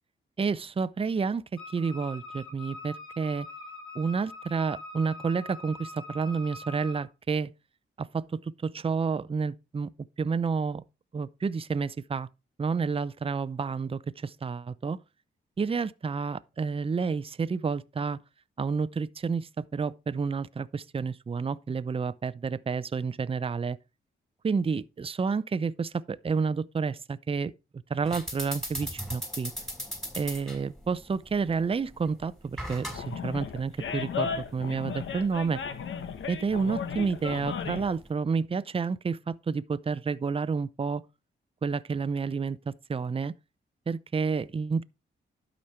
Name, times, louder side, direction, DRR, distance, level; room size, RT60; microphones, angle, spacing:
voice 1, 0.4-3.5 3.9-7.5 8.0-9.9 10.2-10.8 11.1-12.3 12.6-15.0 15.6-18.2 18.6-23.8 24.4-27.5 27.9-29.5 30.1-35.6 36.3-41.0 41.6-43.3 43.9-44.8, right 5 dB, 30° right, 0.6 m, -30 dB
Wind instrument woodwind instrument, 1.6-7.1, left 3 dB, 25° left, 4.3 m, -43 dB
sound 1, 28.0-38.1, equal, ahead, 3.4 m, -40 dB
Animal, 32.9-38.0, left 6 dB, 75° left, 1.3 m, -35 dB
11.5 x 5.1 x 4.4 m
cardioid pair, 70°, 20 cm